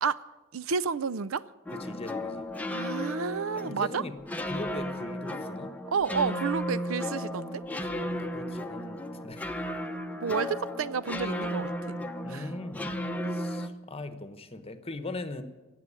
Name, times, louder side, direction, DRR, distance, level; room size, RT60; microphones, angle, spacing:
voice 1, 0.0-1.5 2.7-4.0 5.9-7.6 10.2-12.0 12.3-12.5, right 5 dB, 85° right, 0.5 m, -31 dB
voice 2, 1.7-2.5 3.5-4.2 4.5-5.8 8.0-9.5 12.2-15.4, left 2 dB, 30° left, 1.0 m, -40 dB
sound 1, 1.7-13.7, left 1 dB, 5° left, 0.8 m, -34 dB
17.0 x 7.6 x 9.7 m
head